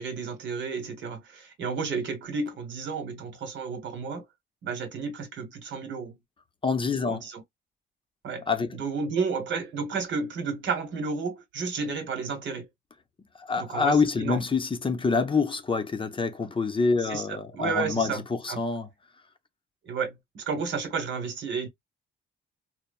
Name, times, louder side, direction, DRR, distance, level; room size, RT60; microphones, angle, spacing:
voice 1, 0.0-4.2 4.6-6.2 7.0-7.4 8.2-8.4 8.7-12.7 13.6-14.4 17.0-18.6 19.8-21.7, right 5 dB, 65° right, 1.2 m, -32 dB
voice 2, 6.6-7.2 8.5-8.7 13.5-18.9, left 4 dB, 25° left, 0.6 m, -26 dB
3.0 x 2.0 x 2.3 m
cardioid pair, 90°, 20 cm